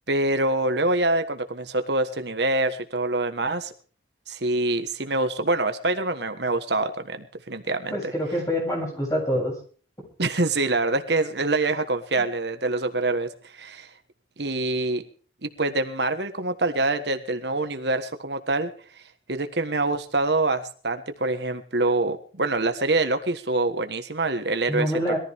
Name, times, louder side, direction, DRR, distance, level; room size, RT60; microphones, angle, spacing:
voice 1, 0.1-3.7 4.3-8.1 10.2-13.9 14.4-15.0 15.4-18.7 19.3-24.9, right 2 dB, 70° right, 8 dB, 1.5 m, -25 dB
voice 2, 7.9-9.6 24.7-25.2, equal, 20° left, -1 dB, 7.4 m, -26 dB
22.0 x 14.5 x 3.6 m, 0.42 s
head